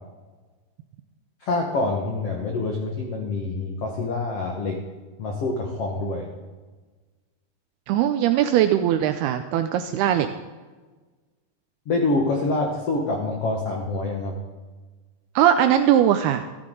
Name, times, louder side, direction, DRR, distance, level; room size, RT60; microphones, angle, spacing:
voice 1, 1.4-4.8 5.2-6.3 11.9-14.4, left 2 dB, 85° left, 1 dB, 1.3 m, -26 dB
voice 2, 7.9-10.3 15.4-16.4, right 10 dB, 85° right, 8 dB, 2.3 m, -20 dB
14.0 x 13.5 x 3.8 m, 1.3 s
omnidirectional pair, 5.1 m